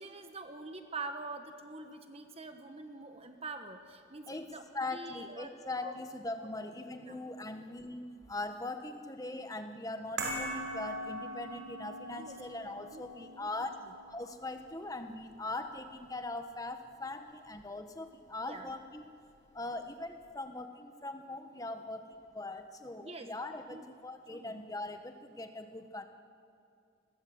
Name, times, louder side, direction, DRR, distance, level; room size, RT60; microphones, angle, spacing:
voice 1, 0.0-6.0 6.4-6.5 7.0-7.2 12.1-13.7 18.4-18.7 23.0-23.3 23.7-23.8 24.3-24.6, right 3 dB, 30° right, 6 dB, 1.3 m, -46 dB
voice 2, 4.3-19.1 19.5-26.0, left 2 dB, 20° left, 7 dB, 1.4 m, -41 dB
sound 1, 10.2-16.6 16.9-17.0, right 1 dB, 65° right, 5.6 m, -42 dB
29.5 x 21.0 x 8.1 m, 2.5 s
head